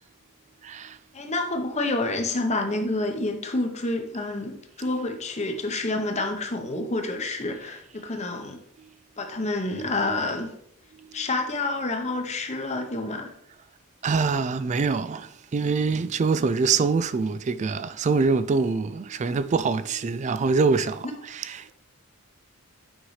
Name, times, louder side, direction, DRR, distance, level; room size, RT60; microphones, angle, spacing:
voice 1, 0.6-1.0 8.8-8.9 11.0-11.2 14.0-21.7, right 4 dB, 30° right, 0.3 m, -25 dB
voice 2, 1.1-8.6 9.2-10.5 11.1-13.3 21.0-21.1, left 2 dB, 30° left, 0.9 m, -28 dB
8.8 x 5.6 x 3.2 m
head